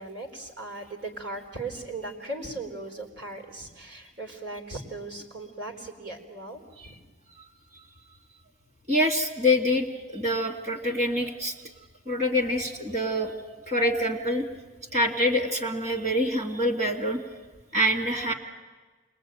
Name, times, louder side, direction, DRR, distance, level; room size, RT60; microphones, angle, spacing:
voice 1, 0.0-6.9, right 2 dB, 60° right, 2 dB, 3.9 m, -38 dB
voice 2, 8.9-9.9 10.1-11.5 12.1-13.3 13.7-14.5 14.9-17.2 17.7-18.3, left 1 dB, 35° right, 3 dB, 2.6 m, -25 dB
28.0 x 21.0 x 9.2 m, 1.3 s
head